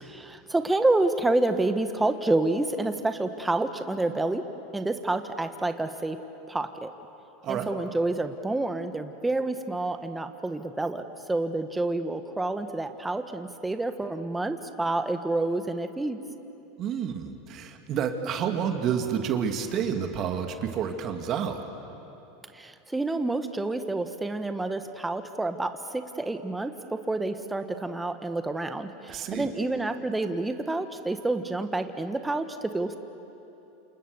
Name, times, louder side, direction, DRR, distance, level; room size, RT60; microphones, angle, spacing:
voice 1, 0.0-4.4 4.7-6.2 6.5-6.9 7.5-16.2 22.5-33.0, right 2 dB, 10° right, 8 dB, 1.5 m, -28 dB
voice 2, 16.8-21.6 29.1-29.5, right 8 dB, 45° right, 5 dB, 2.5 m, -29 dB
28.5 x 28.0 x 7.1 m, 2.9 s
hypercardioid pair, 95°, 0 cm